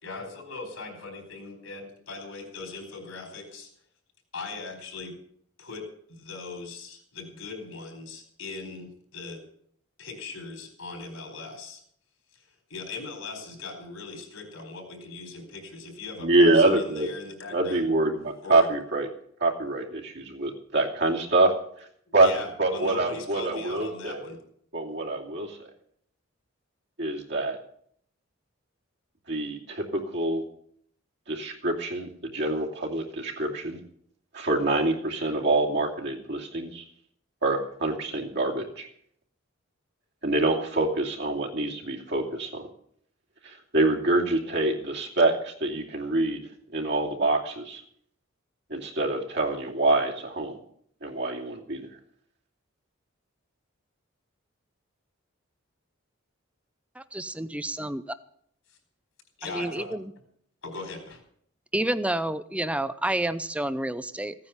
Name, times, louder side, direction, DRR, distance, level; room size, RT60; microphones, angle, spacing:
voice 1, 0.0-3.7 4.3-5.2 5.6-9.4 10.0-11.8 12.3-12.4 12.7-17.9 18.4-18.7 22.1-24.4 59.4-59.9 60.6-61.2, left 3 dB, 85° left, 3 dB, 4.4 m, -39 dB
voice 2, 16.2-17.1 17.5-19.1 19.4-21.5 22.1-22.3 22.6-24.3 24.7-25.7 27.0-27.6 29.3-30.4 31.3-33.8 34.3-36.8 37.4-38.9 40.2-42.7 43.4-46.4 46.7-47.8 48.7-50.6 51.0-51.9, right 2 dB, 55° right, -1 dB, 2.7 m, -25 dB
voice 3, 57.0-58.0 59.5-60.1 61.7-64.3, right 1 dB, 5° right, 13 dB, 0.5 m, -29 dB
15.5 x 9.6 x 7.2 m, 0.65 s
head